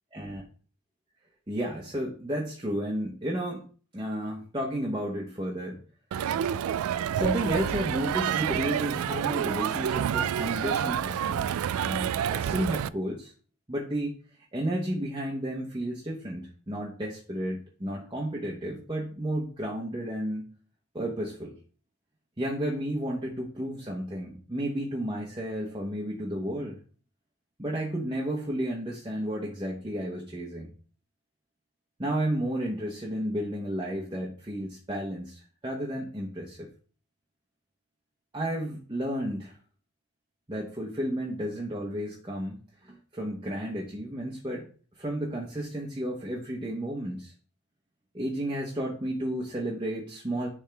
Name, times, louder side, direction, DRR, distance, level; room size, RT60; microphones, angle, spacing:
voice 1, 0.1-0.4 1.5-3.7 3.9-5.8 7.1-13.3 13.7-14.2 14.5-20.5 20.9-21.5 22.4-26.8 27.6-30.7 32.0-36.7 38.3-39.6 40.5-44.7 45.0-47.3 48.1-50.5, right 1 dB, 20° right, -2 dB, 0.9 m, -32 dB
Crowd, 6.1-12.9, right 9 dB, 85° right, 0.3 m, -28 dB
10.5 x 3.6 x 3.4 m, 0.41 s
head